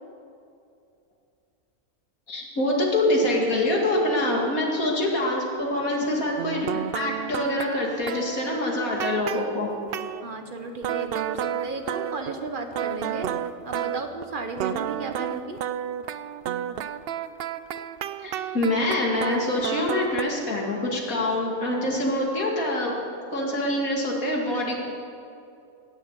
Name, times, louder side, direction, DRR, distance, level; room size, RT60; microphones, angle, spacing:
voice 1, 2.3-6.7 6.9-9.7 18.2-23.0 23.3-24.8, left 1 dB, 70° left, -1 dB, 2.7 m, -25 dB
sound 1, 6.4-10.3 10.8-14.2 14.6-20.2, right 10 dB, 80° right, 0.5 m, -31 dB
voice 2, 10.2-13.3 13.6-15.6, right 3 dB, 40° right, 5 dB, 1.2 m, -34 dB
17.5 x 7.2 x 8.1 m, 2.6 s
omnidirectional pair, 1.6 m